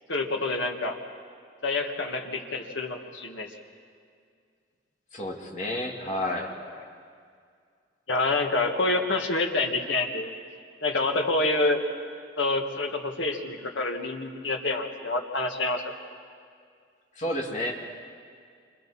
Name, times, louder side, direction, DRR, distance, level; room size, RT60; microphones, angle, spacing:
voice 1, 0.1-1.0 1.6-3.5 8.1-10.3 10.8-11.8 12.4-15.9, left 2 dB, 85° left, 3 dB, 1.9 m, -27 dB
voice 2, 5.1-6.5 17.1-17.7, left 1 dB, 40° left, 0 dB, 2.5 m, -30 dB
28.5 x 26.5 x 4.4 m, 2.2 s
head